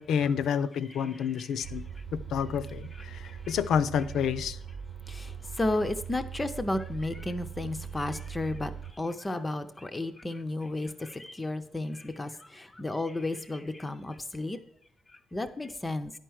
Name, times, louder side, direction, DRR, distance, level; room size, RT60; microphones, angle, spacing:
voice 1, 0.0-1.8 2.3-4.6, left 7 dB, 65° left, 14 dB, 0.5 m, -29 dB
voice 2, 1.0-1.7 3.5-3.6 5.1-8.7 9.0-14.6 15.3-16.1, left 2 dB, 15° left, 9 dB, 0.5 m, -33 dB
sound 1, 1.6-8.9, right 7 dB, 65° right, 0.5 m, -41 dB
11.0 x 4.5 x 6.2 m, 0.68 s
cardioid pair, 175°, 0 cm